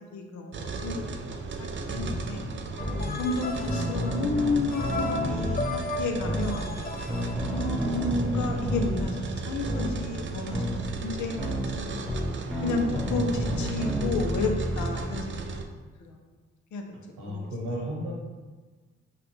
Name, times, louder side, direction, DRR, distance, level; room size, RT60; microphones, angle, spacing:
voice 1, 0.1-1.0 1.6-2.4 3.2-6.7 7.5-12.0 12.6-15.4 16.0-16.1 16.7-16.8 17.2-17.5, left 3 dB, 75° left, 3 dB, 0.7 m, -31 dB
sound 1, 0.5-15.6, right 4 dB, 40° right, 0.5 m, -36 dB
sound 2, 1.9-2.2 2.8-3.1 3.7-5.6 6.2-6.5 7.1-9.1 9.6-9.9 10.5-10.8 11.4-11.6 12.1-14.8, equal, 5° right, 1.1 m, -30 dB
sound 3, 2.8-8.2, left 2 dB, 30° left, 0.5 m, -36 dB
voice 2, 13.0-13.5 17.2-18.1, equal, 90° right, -3 dB, 1.1 m, -34 dB
5.8 x 2.4 x 3.2 m, 1.3 s
supercardioid pair, 50°, 30 cm